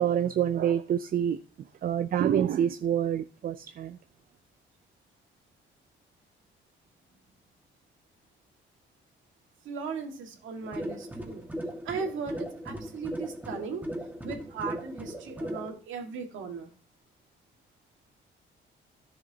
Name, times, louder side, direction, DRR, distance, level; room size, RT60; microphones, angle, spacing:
voice 1, 0.0-1.4 1.8-4.0, right 9 dB, 50° right, 0.4 m, -27 dB
voice 2, 9.7-11.5 11.9-13.8 14.2-16.7, right 5 dB, 80° right, 1.8 m, -37 dB
sound 1, 10.6-15.7, equal, 10° right, 1.6 m, -37 dB
11.0 x 7.1 x 2.8 m
cardioid pair, 90°, 20 cm